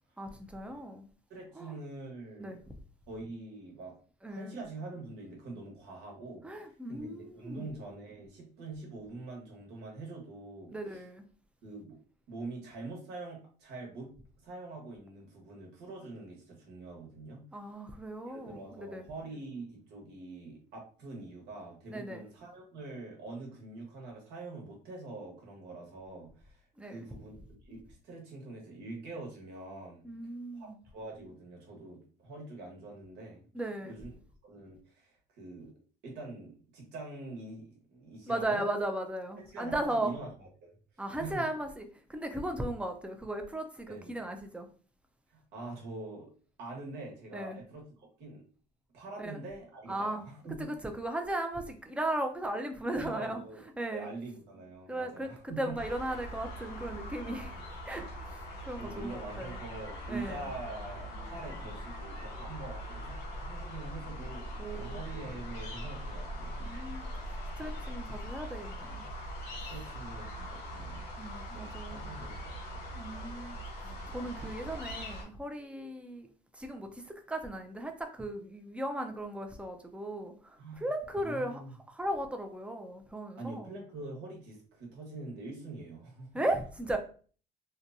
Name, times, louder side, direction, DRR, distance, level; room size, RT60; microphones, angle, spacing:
voice 1, 0.2-1.1 1.6-1.8 2.4-2.6 4.2-4.6 6.4-7.7 10.7-11.2 17.5-19.0 21.9-22.2 26.8-27.1 30.0-30.8 33.5-34.0 38.3-40.1 41.0-44.7 47.3-47.6 49.2-49.3 49.9-50.2 50.6-53.4 53.8-54.1 54.9-55.3 55.6-57.5 57.9-58.4 58.7-59.6 60.1-60.5 64.2-65.0 66.6-69.0 71.2-72.0 72.9-76.3 76.5-81.6 81.9-83.8 86.3-87.0, right 1 dB, 5° right, 0.4 m, -37 dB
voice 2, 1.3-2.6 3.1-3.9 4.3-11.0 11.6-12.0 12.3-14.1 14.4-17.4 18.2-27.4 27.6-30.0 30.5-33.4 33.8-34.1 34.4-35.7 36.0-38.7 39.4-40.3 40.6-40.7 41.2-41.4 43.9-44.2 45.3-46.3 46.6-48.4 48.9-50.7 52.9-55.8 58.8-63.2 63.4-66.6 67.7-67.8 69.7-71.3 71.5-72.9 80.6-80.9 81.1-81.7 83.4-86.4, right 3 dB, 80° right, 1.1 m, -44 dB
sound 1, 55.7-75.2, equal, 85° left, 1.2 m, -41 dB
2.8 x 2.2 x 2.5 m
cardioid pair, 110°, 17 cm